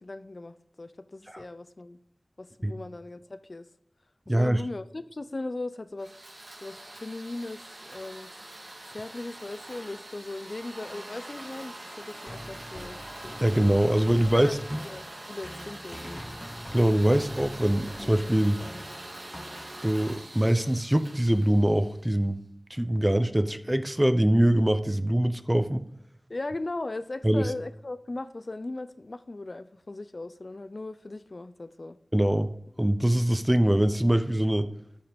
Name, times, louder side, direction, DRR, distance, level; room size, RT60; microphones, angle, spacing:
voice 1, 0.0-2.0 2.4-3.7 4.3-6.1 6.6-8.3 8.9-13.0 14.3-16.2 26.3-32.0, left 2 dB, 55° left, 13 dB, 0.7 m, -38 dB
voice 2, 4.3-4.6 13.4-14.8 16.7-18.6 19.8-22.4 22.7-25.8 27.2-27.5 32.1-32.5 32.8-34.7, right 1 dB, 15° right, 10 dB, 0.8 m, -23 dB
sound 1, 6.0-22.2, right 1 dB, 75° right, 3.5 m, -44 dB
sound 2, 12.3-20.1, left 1 dB, 20° left, 0.9 m, -43 dB
13.0 x 5.6 x 5.3 m, 0.73 s
wide cardioid pair, 45°, 0 cm